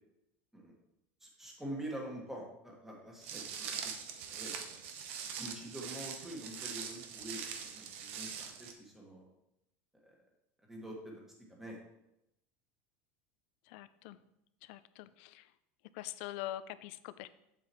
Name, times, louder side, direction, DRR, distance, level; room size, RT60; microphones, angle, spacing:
voice 1, 1.2-3.9 4.3-4.6 5.4-9.3 10.0-10.2 10.7-11.2 11.5-11.8, right 1 dB, 5° right, -2 dB, 1.7 m, -46 dB
Walk footsteps, 3.2-8.7, right 7 dB, 75° right, 1.0 m, -43 dB
voice 2, 13.7-14.2 14.6-15.5 15.9-17.3, left 14 dB, 65° left, 14 dB, 0.4 m, -44 dB
7.6 x 7.5 x 3.1 m, 0.83 s
supercardioid pair, 150°, 7 cm